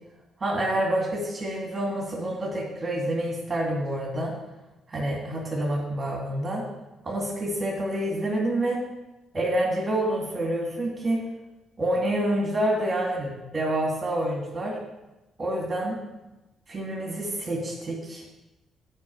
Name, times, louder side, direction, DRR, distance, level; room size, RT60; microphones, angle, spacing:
voice 1, 0.4-4.3 4.9-6.6 7.0-8.8 9.3-11.2 11.8-14.8 15.4-15.9 16.7-18.2, right 1 dB, 30° right, -2 dB, 2.4 m, -27 dB
8.3 x 5.4 x 7.7 m, 1.0 s
cardioid pair, 90°, 0 cm